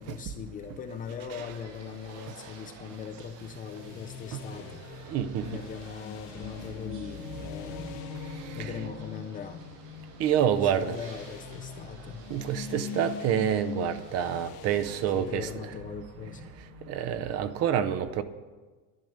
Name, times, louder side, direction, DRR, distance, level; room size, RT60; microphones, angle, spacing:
voice 1, 0.0-5.1 5.4-8.0 8.5-9.6 10.4-12.3 15.1-16.4, left 7 dB, 20° left, 0.4 m, -40 dB
sound 1, 1.4-14.4, right 4 dB, 75° right, 5.1 m, -51 dB
sound 2, 3.6-17.2, left 9 dB, 85° left, 1.0 m, -44 dB
voice 2, 5.1-5.5 8.6-8.7 10.2-11.0 12.3-15.5 16.9-18.2, right 9 dB, 40° right, 0.6 m, -27 dB
sound 3, 5.9-11.6, left 1 dB, 15° right, 1.3 m, -47 dB
11.0 x 10.5 x 6.5 m
cardioid pair, 170°, 39 cm